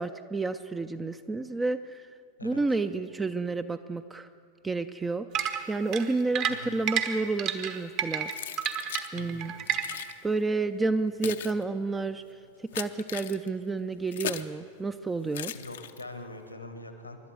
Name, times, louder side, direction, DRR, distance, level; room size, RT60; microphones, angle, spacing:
voice 1, 0.0-2.0 2.4-4.3 4.6-5.3 5.7-8.3 9.1-9.5 10.2-12.2 12.7-15.5, right 3 dB, 10° right, 9 dB, 0.4 m, -30 dB
sound 1, 5.3-10.1, right 8 dB, 40° right, 1.1 m, -30 dB
Keys jangling, 8.3-9.1 9.7-10.1 10.9-14.6 15.3-16.2, left 10 dB, 60° left, 0.6 m, -38 dB
voice 2, 9.1-9.6 15.5-17.2, left 2 dB, 85° left, 7 dB, 1.4 m, -43 dB
24.5 x 12.0 x 4.8 m, 2.4 s
figure-of-eight pair, 90°, 0 cm